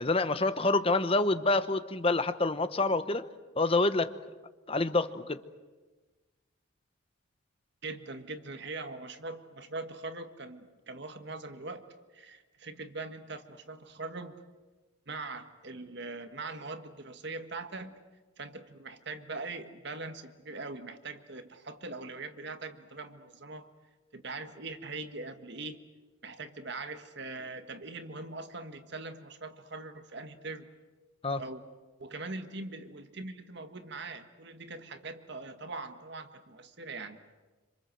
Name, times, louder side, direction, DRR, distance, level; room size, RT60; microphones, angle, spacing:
voice 1, 0.0-3.2 3.6-4.1 4.7-5.4 31.2-31.4, left 2 dB, 30° left, 12 dB, 1.0 m, -27 dB
voice 2, 7.8-11.9 12.1-14.4 15.1-18.0 18.4-23.7 24.1-25.8 26.2-30.7 31.4-31.6 32.0-37.3, right 3 dB, 55° right, 8 dB, 1.6 m, -42 dB
27.0 x 26.5 x 7.8 m, 1.3 s
head